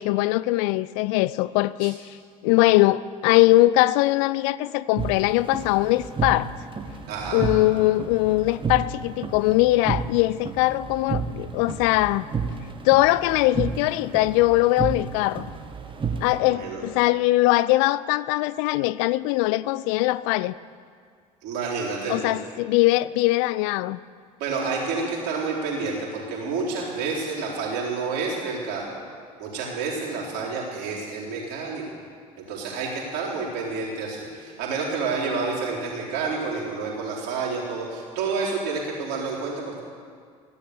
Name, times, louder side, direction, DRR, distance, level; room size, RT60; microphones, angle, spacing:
voice 1, 0.0-2.0 2.4-6.5 7.3-12.2 12.8-15.5 16.2-20.6 22.1-24.0, left 18 dB, 55° left, 18 dB, 0.4 m, -21 dB
sound 1, 5.0-16.4, right 5 dB, 25° right, 1.6 m, -32 dB
voice 2, 7.1-7.5 16.5-16.8 21.4-22.4 24.4-28.9 29.4-31.8 32.4-39.8, right 4 dB, 55° right, -4 dB, 4.2 m, -29 dB
15.5 x 12.0 x 6.8 m, 2.1 s
figure-of-eight pair, 65°, 20 cm